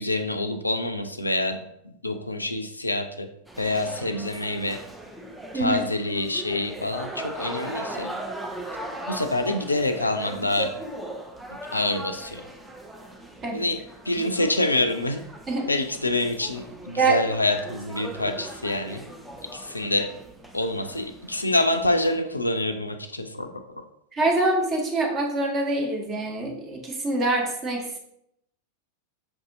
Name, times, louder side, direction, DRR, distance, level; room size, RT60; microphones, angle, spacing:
voice 1, 0.0-1.6 1.8-3.3 3.6-4.8 5.5-8.1 9.1-10.7 11.7-12.4 13.5-13.8 14.1-15.2 15.7-19.0 19.5-20.1 20.5-23.5, left 2 dB, 80° left, 7 dB, 0.4 m, -26 dB
sound 1, 3.5-22.2, right 1 dB, 5° right, 0.5 m, -39 dB
voice 2, 5.5-5.9 13.4-13.7 14.2-14.3 15.5-15.6 17.0-17.3 24.1-28.0, right 2 dB, 25° right, 0 dB, 1.0 m, -25 dB
5.8 x 2.6 x 2.6 m, 0.76 s
figure-of-eight pair, 90°, 0 cm